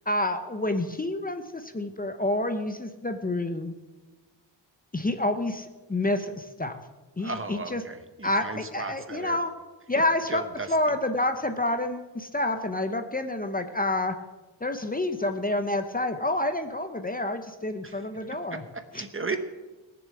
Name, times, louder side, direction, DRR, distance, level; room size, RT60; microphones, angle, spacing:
voice 1, 0.1-3.7 4.9-6.8 7.2-7.8 8.2-9.5 9.9-10.4 10.7-14.1 14.6-18.6 18.9-19.0, left 1 dB, 20° left, 8 dB, 0.8 m, -28 dB
voice 2, 7.2-9.4 10.3-11.0 17.8-18.0 18.5-19.4, right 3 dB, 30° right, 9 dB, 0.9 m, -36 dB
19.0 x 7.0 x 7.6 m, 1.2 s
wide cardioid pair, 150°, 44 cm